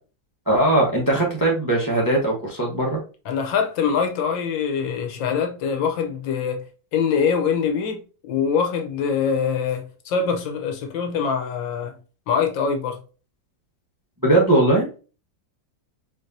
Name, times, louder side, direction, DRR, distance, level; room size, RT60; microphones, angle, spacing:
voice 1, 0.5-3.0 14.2-14.9, right 1 dB, 15° right, 0.7 m, -19 dB
voice 2, 3.2-6.6 6.9-11.9 12.3-13.0, left 6 dB, 80° left, 1.5 m, -24 dB
4.5 x 3.2 x 2.7 m
omnidirectional pair, 2.1 m